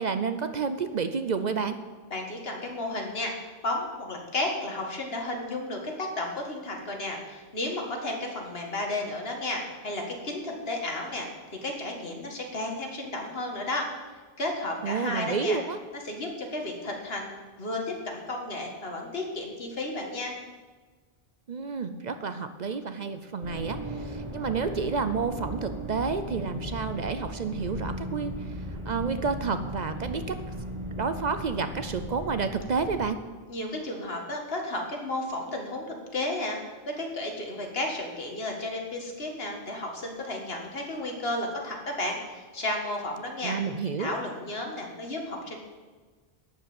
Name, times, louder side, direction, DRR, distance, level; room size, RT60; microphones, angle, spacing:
voice 1, 0.0-1.8 14.8-15.8 21.5-28.5 28.9-30.4 30.9-33.2 43.4-44.1, right 5 dB, 50° right, 10 dB, 0.7 m, -30 dB
voice 2, 2.1-3.3 3.6-11.3 11.6-13.8 14.4-15.6 16.0-17.3 17.6-20.3 33.5-36.6 37.0-43.6 44.0-45.6, left 2 dB, 75° left, 1 dB, 2.1 m, -33 dB
sound 1, 23.4-33.0, equal, 30° right, 1.5 m, -37 dB
12.0 x 5.7 x 8.8 m, 1.4 s
omnidirectional pair, 1.0 m